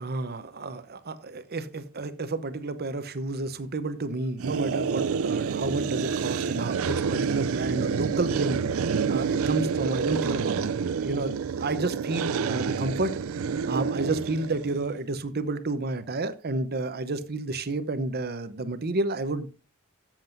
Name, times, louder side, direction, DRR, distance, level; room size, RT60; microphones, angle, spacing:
voice 1, 0.0-13.1 13.7-19.5, right 2 dB, 45° right, 12 dB, 0.8 m, -31 dB
sound 1, 4.4-14.9, right 6 dB, 70° right, 0.4 m, -28 dB
13.0 x 7.5 x 2.6 m, 0.33 s
head